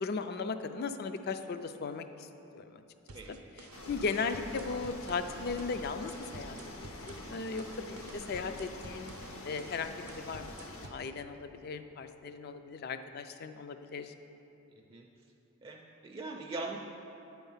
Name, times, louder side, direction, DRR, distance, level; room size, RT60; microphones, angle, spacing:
voice 1, 0.0-2.8 3.3-9.1 9.4-14.1, left 4 dB, 45° left, 9 dB, 0.3 m, -37 dB
voice 2, 3.1-3.5 14.9-15.1 15.6-16.8, right 3 dB, 25° right, 0 dB, 0.4 m, -41 dB
sound 1, 3.1-11.1, right 3 dB, 80° right, 0.5 m, -51 dB
sound 2, 3.7-10.9, left 1 dB, 75° left, 0.9 m, -46 dB
9.4 x 4.5 x 5.6 m, 3.0 s
head